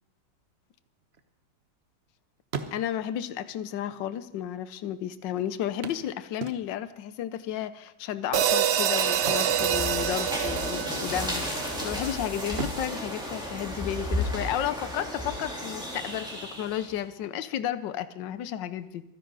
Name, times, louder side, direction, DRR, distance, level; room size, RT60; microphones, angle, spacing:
sound 1, 0.8-2.1 2.4-3.3 4.2-4.3 4.5-4.6 5.8-7.0 9.1-10.4 10.6-10.9 11.4-12.0 12.5-14.3 16.2-16.3 16.8-16.9, right 5 dB, 45° right, 1.0 m, -40 dB
voice 1, 2.7-11.5 11.8-19.0, left 10 dB, 80° left, 13 dB, 1.5 m, -33 dB
sound 2, 8.3-12.7, right 9 dB, 90° right, 0.5 m, -27 dB
sound 3, 8.6-17.0, left 1 dB, ahead, 3.4 m, -34 dB
25.0 x 10.5 x 4.0 m, 0.87 s
omnidirectional pair, 2.0 m